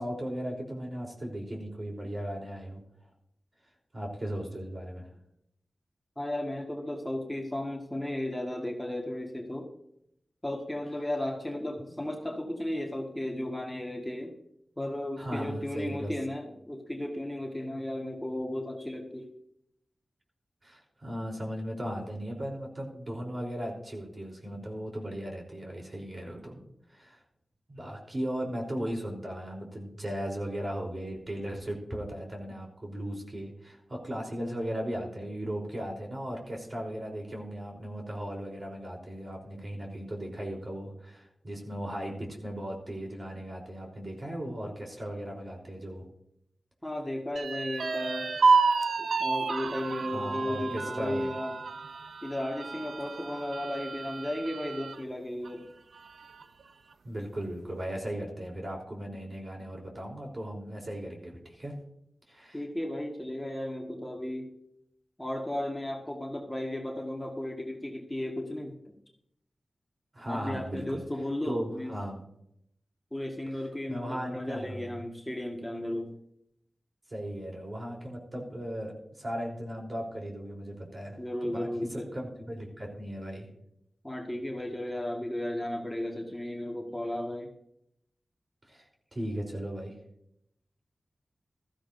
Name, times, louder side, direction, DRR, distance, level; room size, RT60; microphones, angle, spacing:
voice 1, 0.0-2.8 3.9-5.1 15.2-16.1 20.6-26.6 26.9-27.2 27.7-46.1 50.1-51.3 57.0-61.8 62.3-62.6 70.1-71.0 71.5-72.2 73.9-74.9 77.1-83.5 88.7-88.9 89.1-89.9, equal, 40° right, -1 dB, 3.8 m, -37 dB
voice 2, 6.2-9.7 10.4-14.3 14.8-19.3 46.8-48.3 49.0-51.5 52.2-55.7 62.5-64.5 65.2-68.9 70.3-71.9 73.1-76.1 81.2-82.1 84.0-87.5, left 1 dB, 10° left, 0 dB, 1.7 m, -35 dB
sound 1, 47.4-55.0 55.5-55.6 55.9-56.6, right 4 dB, 80° right, 0.6 m, -30 dB
15.5 x 13.5 x 2.7 m, 0.77 s
cardioid pair, 50°, 0 cm